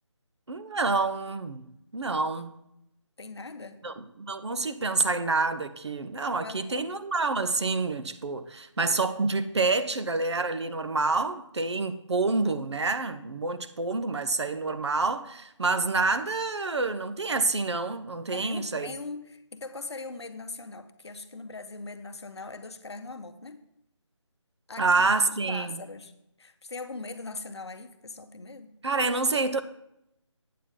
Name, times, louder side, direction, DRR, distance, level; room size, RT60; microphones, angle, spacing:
voice 1, 0.5-2.6 3.8-18.9 24.8-25.8 28.8-29.6, right 3 dB, 60° right, 0.7 m, -28 dB
voice 2, 3.2-3.8 6.4-6.8 18.3-23.6 24.7-25.1 25.5-26.1 26.4-28.7, left 3 dB, 60° left, 0.7 m, -40 dB
8.4 x 7.5 x 3.7 m
figure-of-eight pair, 180°, 16 cm